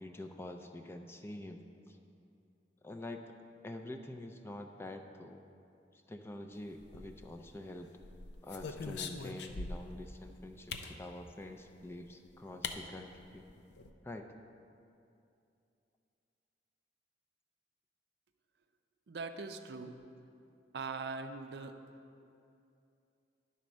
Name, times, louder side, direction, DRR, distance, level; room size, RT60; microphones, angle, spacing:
voice 1, 0.0-2.0 2.8-3.3 3.6-5.4 5.9-7.9 8.4-13.4 14.0-14.3, left 1 dB, 15° left, 5 dB, 0.4 m, -46 dB
sound 1, 6.8-7.5 8.0-10.0 10.7-11.0 12.1-12.2 12.6-12.8 13.1-13.2 13.5-13.9, left 4 dB, 70° left, 0.5 m, -42 dB
voice 2, 19.1-20.0 20.7-21.8, right 4 dB, 65° right, 7 dB, 0.5 m, -41 dB
10.5 x 4.2 x 6.1 m, 2.6 s
head